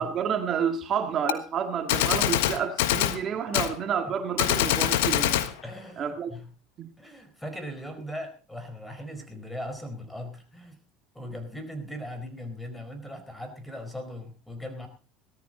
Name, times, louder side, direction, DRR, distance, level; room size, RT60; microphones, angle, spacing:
voice 1, 0.0-5.4 6.0-6.3 6.8-6.9, right 7 dB, 45° right, 5 dB, 1.9 m, -29 dB
Gunshot gunfire, 1.3-1.4 1.9-3.2 3.5-3.7 4.4-5.5, left 13 dB, 85° left, 1.3 m, -24 dB
voice 2, 3.5-4.1 5.6-6.5 7.0-10.8 11.1-14.9, equal, 5° left, 8 dB, 4.5 m, -39 dB
18.0 x 13.5 x 4.0 m, 0.35 s
supercardioid pair, 100°, 0 cm